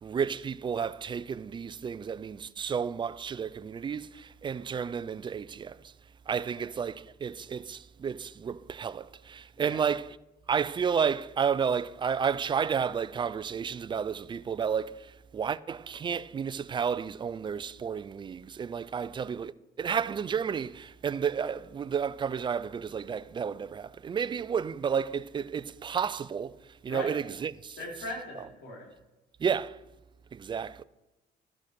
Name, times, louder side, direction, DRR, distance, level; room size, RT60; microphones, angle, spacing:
voice 1, 0.0-5.9 6.3-10.2 10.5-26.6 26.8-27.8 29.4-29.8 30.3-30.8, right 7 dB, 25° right, 0.4 m, -31 dB
voice 2, 27.8-28.9, left 1 dB, 80° left, 4.0 m, -39 dB
13.0 x 6.3 x 6.0 m
cardioid pair, 115°, 18 cm